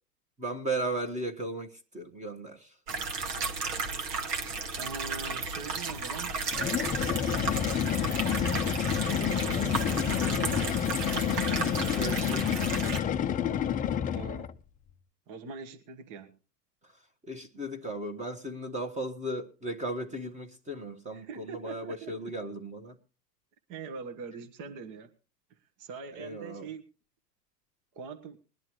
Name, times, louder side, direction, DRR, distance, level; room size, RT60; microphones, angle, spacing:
voice 1, 0.4-2.7 11.9-12.5 17.3-23.0 26.1-26.7, right 1 dB, 15° right, 1.5 m, -36 dB
sound 1, 2.9-13.0, right 4 dB, 75° right, 2.2 m, -34 dB
voice 2, 4.7-6.3 9.0-11.2 14.1-14.5 15.3-16.4 21.1-22.3 23.7-25.1 25.8-26.8 27.9-28.4, right 5 dB, 40° right, 1.5 m, -43 dB
sound 2, 6.5-14.6, left 8 dB, 15° left, 0.6 m, -29 dB
21.0 x 10.5 x 3.1 m
hypercardioid pair, 110°, 49 cm